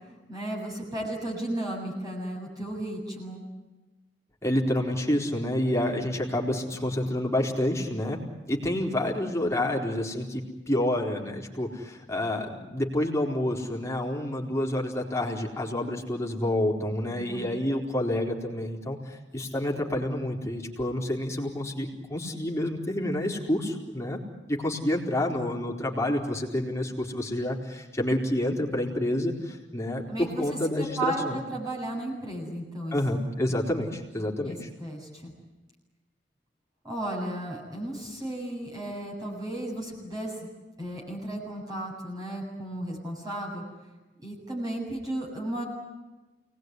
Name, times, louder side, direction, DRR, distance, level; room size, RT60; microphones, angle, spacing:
voice 1, 0.3-3.4 17.1-17.5 30.1-30.4 30.8-31.2 31.5-33.0 33.5-33.6 34.2-35.3 36.8-40.5 40.8-43.6 44.2-45.6, right 1 dB, 20° right, -3 dB, 7.9 m, -34 dB
voice 2, 4.4-8.2 8.5-10.4 10.7-24.2 24.5-31.4 32.9-34.7, left 1 dB, 15° left, 0 dB, 4.3 m, -28 dB
29.0 x 20.0 x 9.7 m, 1.1 s
head